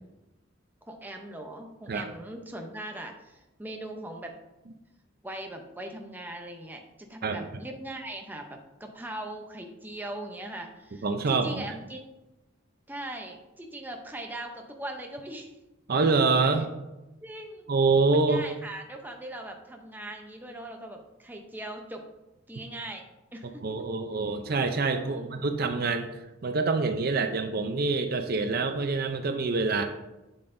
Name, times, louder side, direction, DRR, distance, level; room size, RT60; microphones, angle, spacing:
voice 1, 0.8-4.3 5.2-12.0 12.9-15.5 17.2-17.7 18.1-22.0 22.5-23.0 23.3-23.6 25.1-25.5, right 1 dB, 10° right, 3 dB, 0.7 m, -40 dB
voice 2, 11.0-11.7 15.9-16.7 17.7-18.4 23.6-26.1 26.4-29.8, right 3 dB, 50° right, 6 dB, 0.5 m, -26 dB
7.8 x 7.2 x 2.6 m, 1.0 s
head